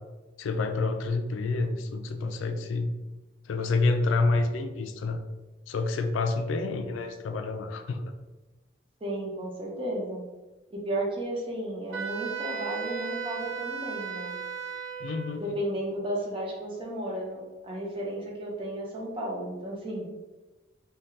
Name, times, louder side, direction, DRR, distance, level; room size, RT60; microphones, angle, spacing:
voice 1, 0.4-2.9 3.5-5.2 5.7-8.1 15.0-15.4, left 3 dB, 90° left, 6 dB, 0.3 m, -28 dB
voice 2, 9.0-10.2 10.7-14.3 15.4-20.1, right 1 dB, 30° right, -3 dB, 0.7 m, -33 dB
Wind instrument woodwind instrument, 11.9-15.4, right 6 dB, 70° right, 0.6 m, -35 dB
2.7 x 2.3 x 3.3 m, 1.1 s
head